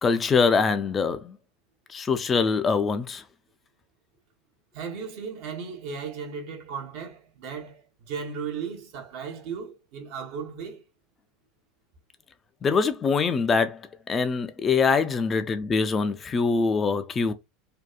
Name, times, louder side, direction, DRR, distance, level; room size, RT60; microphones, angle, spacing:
voice 1, 0.0-1.4 1.9-3.2 12.6-13.8 14.1-17.3, left 5 dB, 25° left, 0.3 m, -23 dB
voice 2, 4.7-10.8, right 6 dB, 55° right, 0.7 m, -36 dB
2.7 x 2.3 x 2.2 m
figure-of-eight pair, 75°, 0 cm